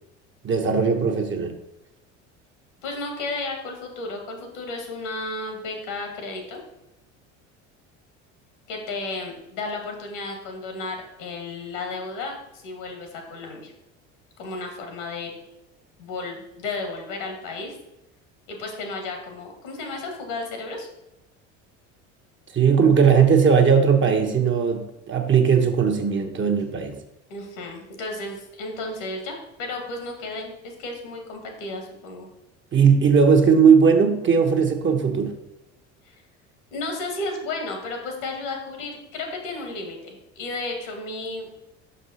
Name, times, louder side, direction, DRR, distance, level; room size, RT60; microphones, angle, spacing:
voice 1, 0.4-1.5 22.5-27.0 32.7-35.3, right 6 dB, 30° right, 4 dB, 1.1 m, -18 dB
voice 2, 2.8-6.6 8.7-13.7 14.4-15.3 16.0-17.7 18.5-20.9 27.3-32.3 36.0-36.2 36.7-41.5, left 2 dB, 75° left, 3 dB, 2.0 m, -33 dB
5.9 x 5.5 x 4.3 m, 0.90 s
hypercardioid pair, 75°, 37 cm